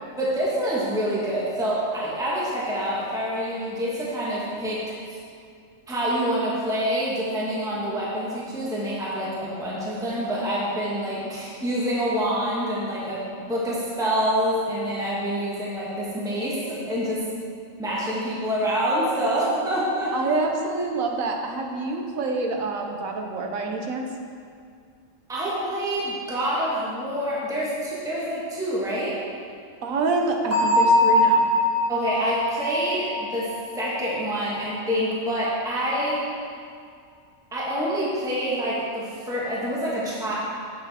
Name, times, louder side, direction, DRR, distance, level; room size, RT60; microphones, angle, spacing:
voice 1, 0.2-4.8 5.9-17.3 17.8-20.4 25.3-29.2 31.9-36.2 37.5-40.3, equal, 5° right, -7 dB, 1.4 m, -26 dB
voice 2, 20.1-24.1 29.8-31.5, right 3 dB, 85° right, 2 dB, 1.3 m, -27 dB
Bell, 30.5-34.2, left 1 dB, 45° right, 2.4 m, -22 dB
8.3 x 7.6 x 4.2 m, 2.2 s
omnidirectional pair, 1.4 m